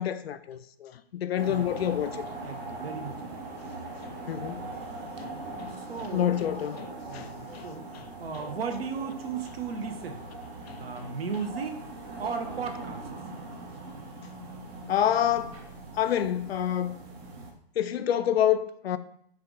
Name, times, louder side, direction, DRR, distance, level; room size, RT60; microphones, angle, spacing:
voice 1, 0.0-2.2 4.0-4.6 5.2-5.3 5.6-5.8 6.1-6.9 7.1-7.7 7.9-8.0 10.7-11.1 14.9-15.7 15.9-16.9 17.8-19.0, left 10 dB, 70° left, 0.4 m, -28 dB
sound 1, 1.4-17.5, right 2 dB, 15° right, 0.4 m, -41 dB
voice 2, 1.5-2.1 2.4-3.4 5.8-6.4 7.1-7.9 8.2-10.2 10.8-11.8 12.2-13.0, right 5 dB, 70° right, 0.8 m, -36 dB
4.6 x 2.5 x 3.6 m
hypercardioid pair, 125°, 31 cm